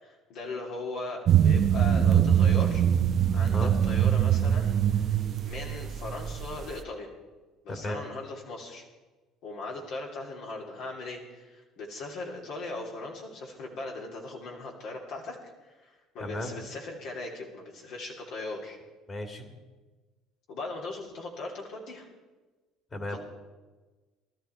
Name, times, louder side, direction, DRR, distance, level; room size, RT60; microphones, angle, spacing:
voice 1, 0.0-2.8 3.3-5.2 5.4-7.1 7.6-8.8 9.4-18.8 20.5-22.1 23.1-23.2, left 2 dB, 70° left, -2 dB, 3.0 m, -39 dB
sound 1, 1.3-6.8, right 9 dB, 50° right, 0.9 m, -23 dB
voice 2, 7.7-8.0 16.2-16.6 19.1-19.6 22.9-23.2, left 1 dB, 35° left, 5 dB, 2.5 m, -35 dB
19.0 x 13.0 x 4.6 m, 1.2 s
supercardioid pair, 85°, 0 cm